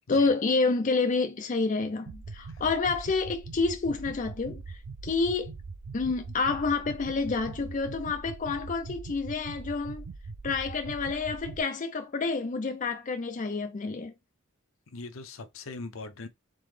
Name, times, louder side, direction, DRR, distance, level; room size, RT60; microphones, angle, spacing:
voice 1, 0.1-5.5 5.9-10.1 10.4-14.1, left 4 dB, 35° left, 0.4 m, -28 dB
sound 1, 2.1-11.6, right 4 dB, 70° right, 0.5 m, -42 dB
voice 2, 14.9-16.3, left 3 dB, 70° left, 0.7 m, -41 dB
3.8 x 3.7 x 3.2 m
head